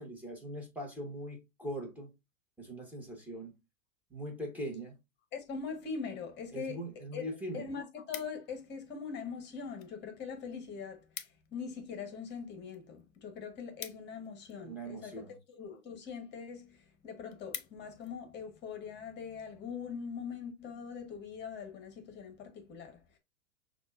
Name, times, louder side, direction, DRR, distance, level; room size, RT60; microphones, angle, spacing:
voice 1, 0.0-2.1 2.6-3.5 4.1-4.9 6.5-7.6 14.6-15.3, right 1 dB, 5° right, 1.4 m, -41 dB
voice 2, 5.3-6.8 7.1-7.2 7.5-23.2, left 6 dB, 25° left, 1.1 m, -42 dB
sound 1, 6.9-7.0 7.3-8.7 9.4-9.9 10.2-10.4 10.6-10.7 10.9-11.6 11.9-14.8 15.5-15.8 16.3-16.4 16.8-16.9 17.1-18.1 18.6-18.8, left 10 dB, 50° left, 0.7 m, -47 dB
6.0 x 2.5 x 2.4 m
figure-of-eight pair, 105°, 40 cm